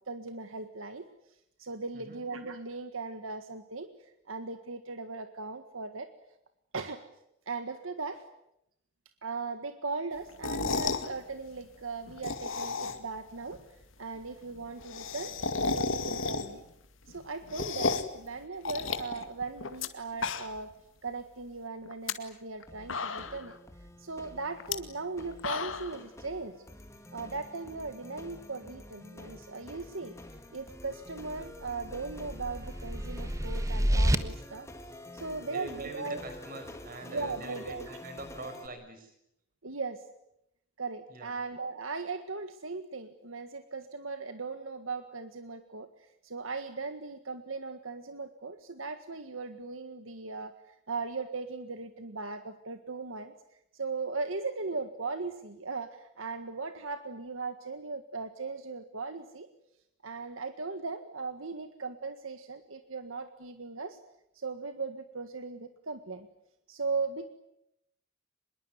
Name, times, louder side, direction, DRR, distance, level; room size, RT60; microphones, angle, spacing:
voice 1, 0.1-1.1 1.6-3.9 4.3-6.1 6.7-7.0 7.5-8.2 9.2-13.6 14.0-15.3 15.7-16.6 17.1-20.7 21.0-23.6 24.0-26.6 27.1-30.2 30.5-34.7 35.1-36.2 37.1-38.0 39.6-40.0 40.8-45.9 46.2-50.5 50.9-53.3 53.7-59.5 60.0-64.0 64.3-66.3 66.7-67.3, right 4 dB, 85° right, 8 dB, 1.7 m, -38 dB
sound 1, 10.3-11.1 12.1-13.2 13.5-13.6 13.8-13.9 14.1-14.2 14.5-16.7 17.1-18.2 18.6-19.9 20.1-20.7 21.1-21.2 21.9-22.1 22.6-22.7 22.9-23.5 24.6-24.7 25.2-26.0, left 4 dB, 75° left, 2.1 m, -33 dB
sound 2, 22.7-38.7, left 1 dB, 15° left, 2.4 m, -48 dB
sound 3, 31.3-34.2, equal, 15° right, 1.3 m, -29 dB
voice 2, 35.4-39.1 41.1-41.4, right 2 dB, 45° right, 7 dB, 6.1 m, -44 dB
25.0 x 22.0 x 9.5 m, 0.79 s
head